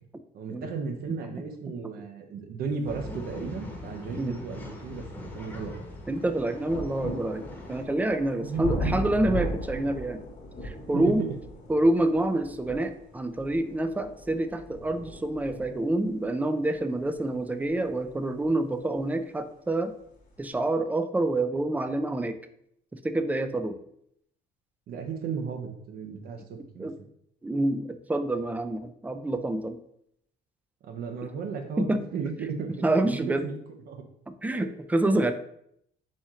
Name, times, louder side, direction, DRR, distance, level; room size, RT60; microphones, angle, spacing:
voice 1, 0.3-5.0 5.3-5.8 8.4-9.0 10.9-11.3 24.9-26.9 30.8-33.6 33.9-34.0 34.6-34.7, right 5 dB, 65° right, 5 dB, 0.8 m, -35 dB
Male speech man speaking / Chatter / Rattle, 2.8-7.8, left 1 dB, 10° left, 0.9 m, -42 dB
sound 1, 3.8-3.9 4.4-19.1 20.0-20.1, left 1 dB, 50° left, 1.1 m, -38 dB
voice 2, 6.1-10.2 10.6-11.2 11.7-19.9 20.4-22.4 22.9-23.8 26.8-27.0 27.4-29.8 31.8-32.0 32.8-33.4 34.3-35.3, right 2 dB, 10° right, 9 dB, 0.3 m, -27 dB
4.2 x 3.1 x 3.7 m, 0.72 s
cardioid pair, 110°, 17 cm